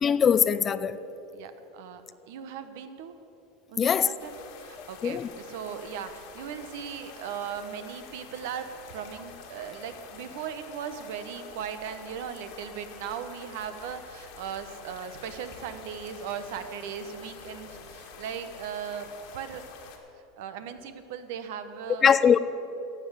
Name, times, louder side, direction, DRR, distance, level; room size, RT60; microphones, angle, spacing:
voice 1, 0.0-1.0 3.8-4.1 4.8-5.3 22.0-22.4, left 7 dB, 30° left, 15 dB, 0.5 m, -22 dB
voice 2, 1.3-2.0 2.3-3.2 3.7-19.6 20.4-22.4, right 8 dB, 70° right, 10 dB, 1.0 m, -38 dB
sound 1, 4.2-20.0, left 6 dB, 70° left, 1.9 m, -47 dB
11.5 x 7.5 x 8.0 m, 2.9 s
hypercardioid pair, 100°, 0 cm